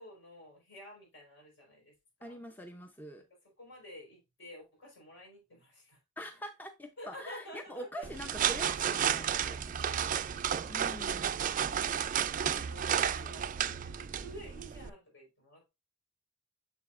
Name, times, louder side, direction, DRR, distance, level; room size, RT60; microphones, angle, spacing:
voice 1, 0.0-2.4 3.3-6.0 7.0-8.1 9.5-11.5 11.8-12.0 12.4-15.7, equal, 65° left, 4.2 m, -51 dB
voice 2, 2.2-3.2 6.2-9.6 9.9-10.0 10.7-11.4, equal, 10° left, 0.6 m, -44 dB
sound 1, 8.0-14.9, right 8 dB, 40° right, 0.4 m, -32 dB
7.4 x 6.7 x 2.4 m
head